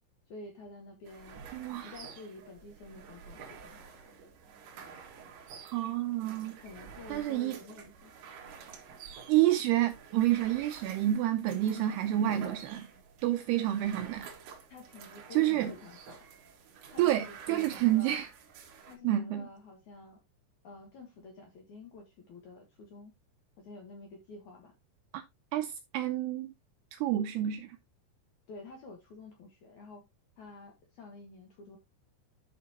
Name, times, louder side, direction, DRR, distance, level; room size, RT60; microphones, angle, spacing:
voice 1, 0.3-1.4 1.8-3.9 6.6-8.1 14.7-16.3 16.9-18.2 18.8-20.2 20.6-23.1 23.6-24.7 28.5-30.0 30.4-31.8, left 3 dB, 65° left, 1.9 m, -49 dB
sound 1, 1.0-19.0, right 6 dB, 65° right, 3.5 m, -49 dB
voice 2, 1.5-2.0 5.7-6.6 7.1-7.6 9.3-12.9 13.2-14.3 15.3-15.7 17.0-18.3 19.0-19.4 25.1-25.2 25.5-26.5 26.9-27.8, right 13 dB, 85° right, 2.4 m, -29 dB
11.5 x 5.4 x 2.8 m
omnidirectional pair, 5.3 m